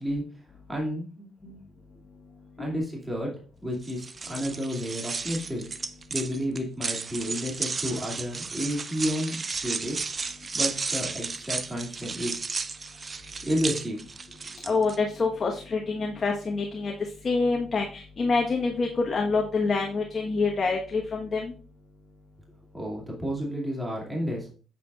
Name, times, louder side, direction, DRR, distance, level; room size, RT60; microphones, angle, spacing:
voice 1, 0.0-1.6 2.6-5.7 6.1-12.4 13.4-14.0 22.7-24.5, equal, 10° right, -2 dB, 2.4 m, -31 dB
sound 1, 3.8-15.0, right 4 dB, 35° right, 0.6 m, -33 dB
voice 2, 14.6-16.9 17.2-21.5, left 4 dB, 40° left, 1 dB, 1.2 m, -26 dB
8.2 x 7.2 x 2.4 m, 0.39 s
cardioid pair, 90°, 0 cm